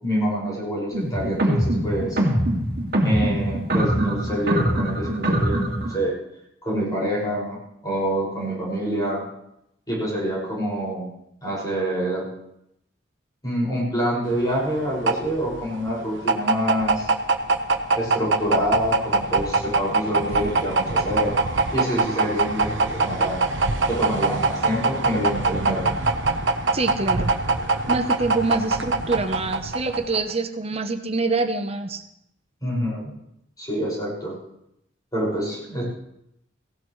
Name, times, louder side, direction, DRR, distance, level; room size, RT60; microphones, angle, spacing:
voice 1, 0.0-2.2 3.0-6.1 6.6-9.2 9.9-11.0 11.4-12.3 13.4-17.1 17.9-21.4 21.7-23.4 23.9-25.9 32.6-33.1 33.6-34.3 35.1-35.8, equal, 20° left, -4 dB, 5.8 m, -26 dB
sound 1, 0.9-6.0, right 1 dB, 55° right, 2.2 m, -23 dB
sound 2, 14.3-30.3, right 3 dB, 75° right, 1.0 m, -23 dB
voice 2, 26.7-27.4 27.9-32.0, right 3 dB, 35° right, 7 dB, 0.8 m, -25 dB
17.0 x 17.0 x 3.2 m, 0.80 s
head